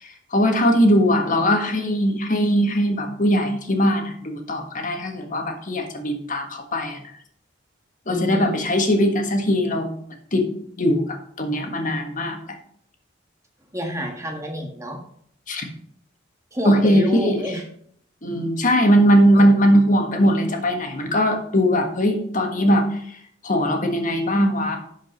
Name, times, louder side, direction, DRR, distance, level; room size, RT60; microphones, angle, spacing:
voice 1, 0.0-7.0 8.1-10.0 10.3-10.5 10.8-12.6 15.5-15.7 16.6-17.4 18.2-24.8, equal, 40° left, 4 dB, 1.6 m, -20 dB
voice 2, 8.1-8.5 13.7-15.0 16.5-17.6 19.4-19.5, equal, 15° right, 2 dB, 1.6 m, -28 dB
11.0 x 5.2 x 5.2 m, 0.65 s
head